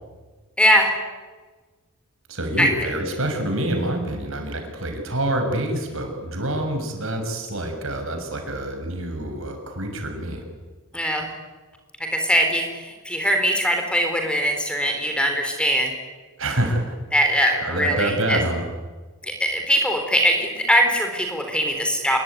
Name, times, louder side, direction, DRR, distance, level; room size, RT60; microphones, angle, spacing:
voice 1, 0.6-0.9 2.6-2.7 10.9-11.3 12.0-15.9 17.1-18.4 19.2-22.2, equal, 5° left, 4 dB, 4.0 m, -21 dB
voice 2, 2.3-10.4 16.4-17.0 17.6-18.6, right 1 dB, 65° right, 4 dB, 6.6 m, -26 dB
27.5 x 22.0 x 9.6 m, 1.4 s
head